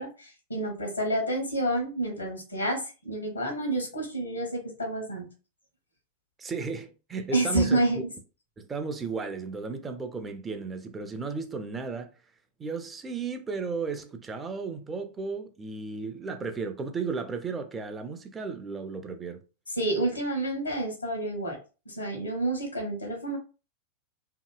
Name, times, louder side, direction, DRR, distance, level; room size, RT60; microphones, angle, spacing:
voice 1, 0.0-5.3 7.3-8.1 19.7-21.6 21.9-23.4, right 1 dB, 80° left, 1.1 m, -29 dB
voice 2, 6.4-8.0 8.6-12.1 12.6-19.4, right 4 dB, 20° right, 0.4 m, -34 dB
2.8 x 2.6 x 2.3 m
figure-of-eight pair, 90°, 0 cm